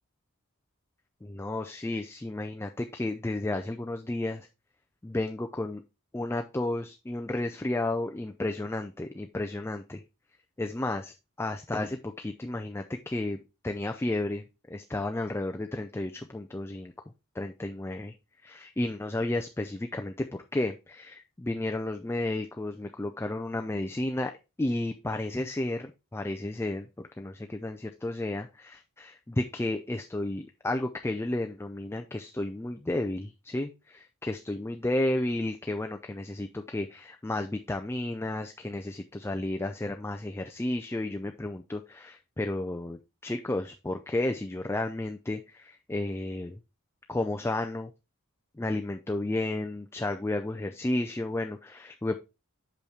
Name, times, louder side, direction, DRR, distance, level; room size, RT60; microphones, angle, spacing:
voice 1, 1.2-4.5 5.0-5.8 6.1-10.0 10.6-13.4 13.6-16.9 17.3-18.1 18.4-24.3 24.6-46.6 47.1-47.9 48.6-52.2, left 2 dB, 10° left, 5 dB, 0.4 m, -32 dB
6.4 x 5.3 x 3.5 m, 0.27 s
head